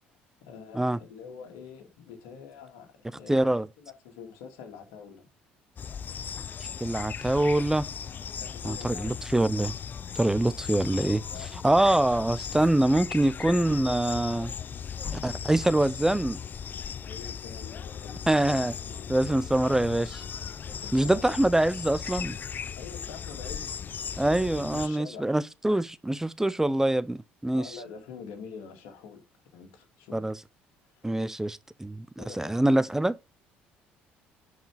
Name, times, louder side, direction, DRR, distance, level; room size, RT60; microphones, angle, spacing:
voice 1, 0.4-3.4 3.8-5.3 8.4-9.2 11.3-11.5 17.0-19.4 20.6-21.4 22.7-23.8 24.1-25.4 27.5-29.2 29.5-30.2 30.9-31.0 32.2-32.8, left 6 dB, 75° left, 2.3 m, -46 dB
voice 2, 3.3-3.7 6.8-7.9 8.6-9.7 10.2-11.2 11.6-14.5 15.2-16.4 18.3-18.7 19.1-20.2 20.9-22.4 24.2-27.7 30.1-30.3 31.0-33.2, right 1 dB, 10° right, 0.5 m, -24 dB
sound 1, 5.8-24.9, left 7 dB, 40° left, 0.4 m, -37 dB
10.5 x 4.8 x 3.5 m
hypercardioid pair, 60°, 5 cm